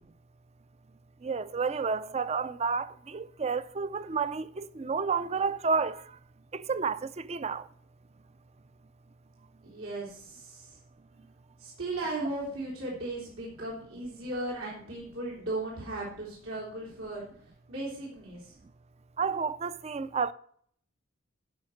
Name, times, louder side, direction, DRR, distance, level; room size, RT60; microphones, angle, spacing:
voice 1, 1.2-6.0 6.5-7.6 19.2-20.3, right 5 dB, 30° right, 0.4 m, -30 dB
voice 2, 9.6-10.8 11.6-17.2 17.7-18.5, right 2 dB, 80° right, 3.6 m, -36 dB
12.0 x 5.7 x 7.8 m
head